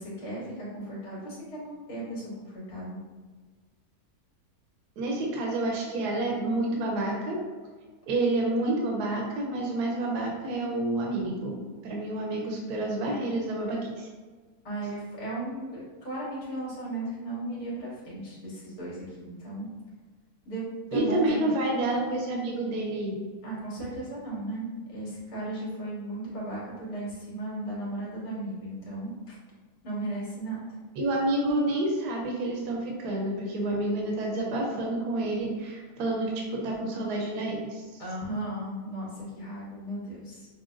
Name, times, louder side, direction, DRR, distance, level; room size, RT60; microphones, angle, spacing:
voice 1, 0.0-3.0 14.6-19.7 20.4-21.5 23.4-29.3 29.8-30.7 38.0-40.5, right 1 dB, 70° left, -6 dB, 1.8 m, -36 dB
voice 2, 5.0-7.4 8.1-11.6 11.8-14.1 20.9-23.1 31.0-37.8, right 2 dB, 75° right, -1 dB, 1.2 m, -29 dB
5.9 x 2.2 x 2.5 m, 1.4 s
omnidirectional pair, 1.7 m